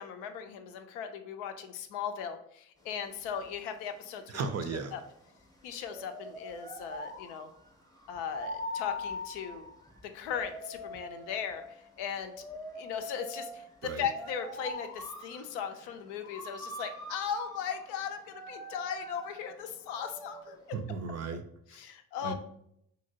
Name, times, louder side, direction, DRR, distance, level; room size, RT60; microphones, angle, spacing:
voice 1, 0.0-4.4 4.9-5.0 5.6-7.5 8.1-9.7 10.0-12.3 12.8-20.8 21.7-22.3, left 7 dB, 80° left, 7 dB, 0.5 m, -38 dB
sound 1, 2.8-20.8, left 1 dB, 10° left, 0.7 m, -44 dB
voice 2, 4.3-4.9 13.8-14.1 20.7-21.4 21.7-21.8 22.2-22.3, right 5 dB, 40° right, 8 dB, 0.4 m, -35 dB
2.8 x 2.8 x 2.7 m, 0.72 s
hypercardioid pair, 45°, 42 cm